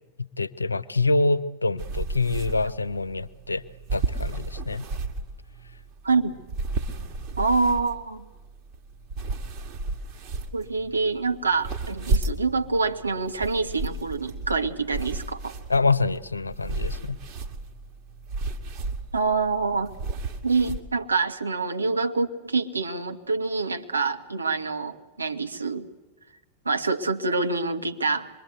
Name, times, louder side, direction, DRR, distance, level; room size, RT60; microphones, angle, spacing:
voice 1, 0.4-3.6 3.9-4.8 15.7-17.2, left 3 dB, 80° left, 15 dB, 0.7 m, -25 dB
sound 1, 1.8-20.8, right 3 dB, 40° right, 2.2 m, -33 dB
voice 2, 6.0-6.4 7.4-8.2 10.5-15.5 19.1-19.9 20.4-25.9 26.6-28.3, right 4 dB, 80° right, 6 dB, 1.4 m, -26 dB
25.5 x 22.5 x 8.0 m, 1.1 s
figure-of-eight pair, 90°, 0 cm